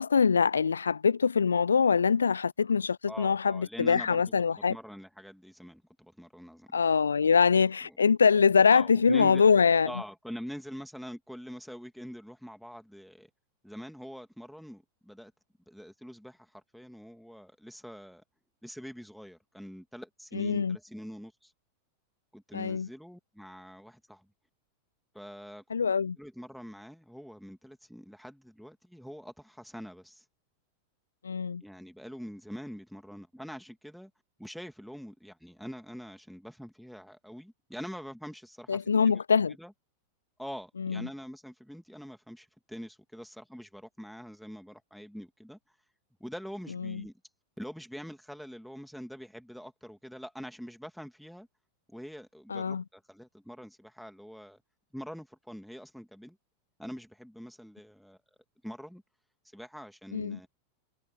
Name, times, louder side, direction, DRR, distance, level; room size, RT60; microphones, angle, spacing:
voice 1, 0.0-4.8 6.7-9.9 20.3-20.8 22.5-22.9 25.7-26.2 31.2-31.6 38.7-39.5 40.8-41.0 46.8-47.0 52.5-52.8 60.1-60.4, left 6 dB, 75° left, 0.7 m, -24 dB
voice 2, 3.1-4.2 4.5-6.7 7.8-8.0 8.7-9.4 9.8-13.3 13.6-15.3 15.7-18.2 18.6-21.5 22.3-24.3 25.1-25.6 26.2-30.2 31.6-34.1 34.4-39.2 39.6-39.7 40.4-45.6 46.2-47.1 47.6-51.5 51.9-54.6 54.9-56.4 56.8-58.2 58.6-59.0 59.5-60.5, equal, ahead, 2.8 m, -44 dB
figure-of-eight pair, 90°, 0 cm